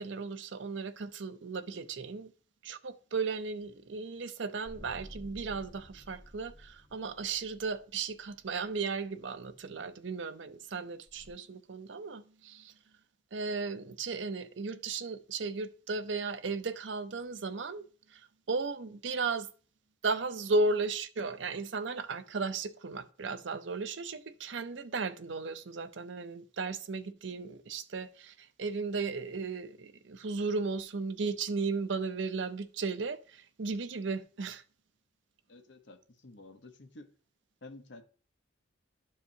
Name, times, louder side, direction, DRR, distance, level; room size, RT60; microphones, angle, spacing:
voice 1, 0.0-2.3 2.6-12.7 13.3-19.5 20.0-34.6, right 4 dB, 75° right, 0.6 m, -35 dB
sound 1, 4.7-9.1 11.1-11.3, equal, 15° left, 0.9 m, -52 dB
voice 2, 35.5-37.1 37.6-38.0, left 2 dB, 70° left, 1.1 m, -51 dB
12.0 x 4.8 x 2.8 m
head